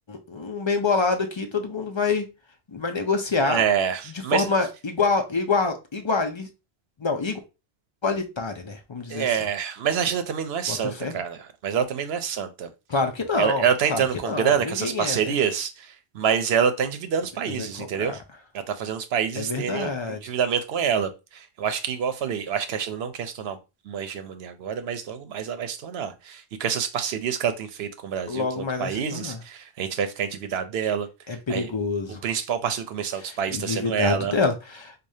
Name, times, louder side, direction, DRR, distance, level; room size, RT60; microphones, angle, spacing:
voice 1, 0.1-2.3 2.7-3.6 4.3-6.5 7.0-7.4 8.0-9.3 10.7-11.1 12.9-13.6 13.9-15.3 17.6-18.1 19.4-20.2 28.3-29.4 31.3-32.2 33.5-34.9, left 4 dB, 40° left, 0.4 m, -26 dB
voice 2, 3.4-4.5 9.1-12.7 13.4-18.2 18.7-23.6 23.8-31.7 32.2-34.4, right 7 dB, 80° right, 0.8 m, -27 dB
4.8 x 2.3 x 2.7 m
omnidirectional pair, 1.0 m